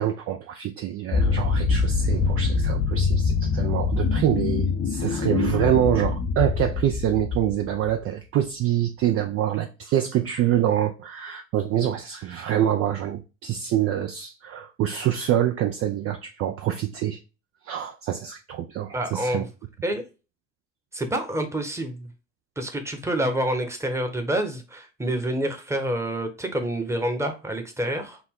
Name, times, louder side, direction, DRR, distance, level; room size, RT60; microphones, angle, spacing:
voice 1, 0.0-17.2 17.7-19.4, right 11 dB, 35° right, 0.5 m, -25 dB
sound 1, 1.1-7.9, left 4 dB, 30° left, 0.6 m, -24 dB
voice 2, 18.9-19.5 19.8-20.0 20.9-22.1 22.6-28.2, right 1 dB, 5° right, 1.0 m, -27 dB
5.9 x 2.1 x 3.5 m
figure-of-eight pair, 70°, 40 cm